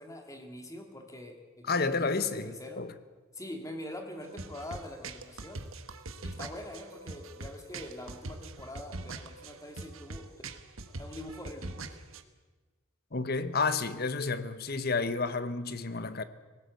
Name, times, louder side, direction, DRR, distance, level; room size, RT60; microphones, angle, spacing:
voice 1, 0.0-2.9 3.3-5.6 6.2-10.5 10.9-12.0, left 1 dB, 15° left, 2.3 m, -44 dB
voice 2, 1.6-2.9 13.1-16.2, left 4 dB, 45° left, 1.0 m, -31 dB
sound 1, 4.2-12.2, right 2 dB, 75° right, 1.3 m, -43 dB
20.0 x 17.5 x 7.9 m
head